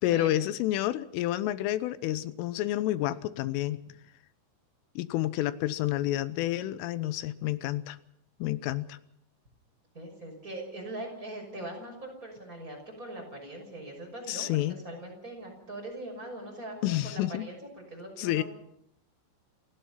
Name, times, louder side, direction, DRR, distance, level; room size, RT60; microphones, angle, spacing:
voice 1, 0.0-3.8 5.0-8.0 8.4-9.0 14.3-14.8 16.8-17.5 18.2-18.4, left 14 dB, 85° left, 14 dB, 3.5 m, -29 dB
voice 2, 9.9-17.6 17.9-18.4, right 1 dB, 15° right, 1 dB, 6.3 m, -41 dB
28.5 x 16.0 x 5.8 m, 0.74 s
omnidirectional pair, 5.7 m